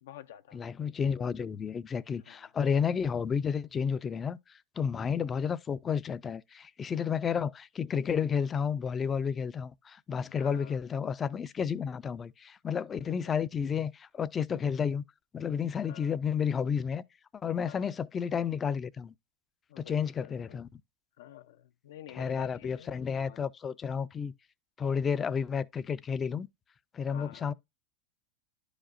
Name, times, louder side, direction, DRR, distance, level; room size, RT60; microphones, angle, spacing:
voice 1, 0.0-0.6 2.1-2.5 10.2-10.8 13.0-13.4 15.8-16.2 17.6-18.0 19.7-20.6 21.2-23.4 27.1-27.5, left 12 dB, 80° left, 0.6 m, -50 dB
voice 2, 0.5-15.0 15.3-17.0 17.4-19.1 19.8-20.7 22.1-24.3 24.8-26.5 26.9-27.5, left 7 dB, 20° left, 0.3 m, -31 dB
11.0 x 5.0 x 2.4 m
supercardioid pair, 150°, 0 cm